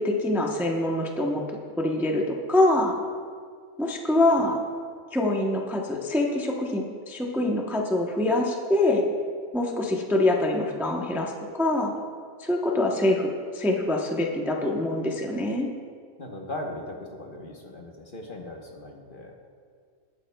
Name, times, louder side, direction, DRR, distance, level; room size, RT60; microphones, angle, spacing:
voice 1, 0.0-1.4 1.8-2.2 2.5-2.9 3.8-4.5 5.1-9.0 9.5-11.9 12.4-15.7, left 1 dB, ahead, 0 dB, 0.7 m, -24 dB
voice 2, 16.2-19.3, left 1 dB, 45° left, 1 dB, 1.2 m, -38 dB
19.0 x 9.1 x 2.3 m, 2.1 s
omnidirectional pair, 1.4 m